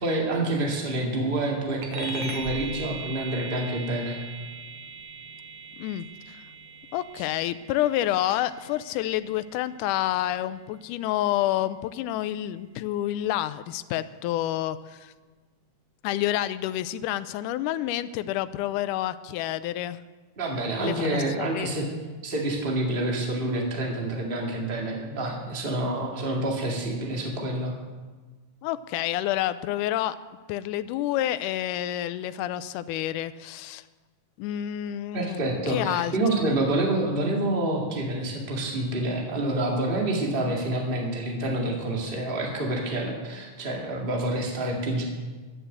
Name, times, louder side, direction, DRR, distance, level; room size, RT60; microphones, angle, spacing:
voice 1, 0.0-4.2 7.2-7.3 20.4-21.9 22.2-27.7 35.1-45.0, right 1 dB, 20° right, 0 dB, 1.8 m, -28 dB
sound 1, 1.8-11.7, right 3 dB, 80° right, 3.1 m, -40 dB
voice 2, 5.8-6.4 6.9-15.1 16.0-20.0 20.8-21.7 28.6-30.2 30.5-33.8 34.4-35.4 35.7-36.5, left 13 dB, 85° left, 14 dB, 2.0 m, -29 dB
11.0 x 10.0 x 8.0 m, 1.3 s
omnidirectional pair, 3.7 m